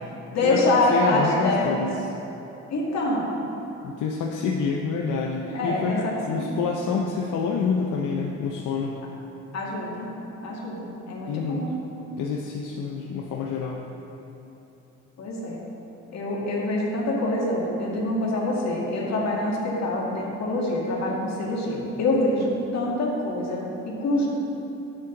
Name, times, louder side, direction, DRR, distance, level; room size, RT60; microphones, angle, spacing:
voice 1, 0.3-1.9 2.7-3.3 5.5-6.5 9.5-10.1 10.4-11.8 15.2-15.6 16.1-24.3, left 2 dB, 60° left, -4 dB, 2.2 m, -25 dB
voice 2, 0.9-1.9 3.8-8.9 11.3-11.6 12.2-13.8, left 5 dB, 80° left, -1 dB, 0.8 m, -27 dB
10.5 x 8.6 x 4.0 m, 3.0 s
cardioid pair, 90°, 30 cm